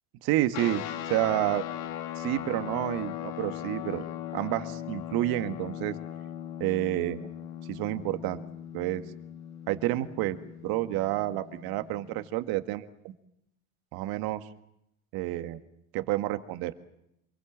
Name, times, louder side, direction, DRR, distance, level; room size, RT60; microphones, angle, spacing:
voice 1, 0.2-1.6 2.2-4.0 4.3-6.0 6.6-7.3 7.7-8.4 8.7-9.0 9.7-10.4 10.6-13.1 13.9-14.4 15.1-15.6 15.9-16.7, right 15 dB, 60° right, 10 dB, 1.9 m, -29 dB
sound 1, 0.5-12.3, left 11 dB, 75° left, 2.5 m, -39 dB
27.5 x 22.0 x 7.5 m, 0.80 s
hypercardioid pair, 75°, 40 cm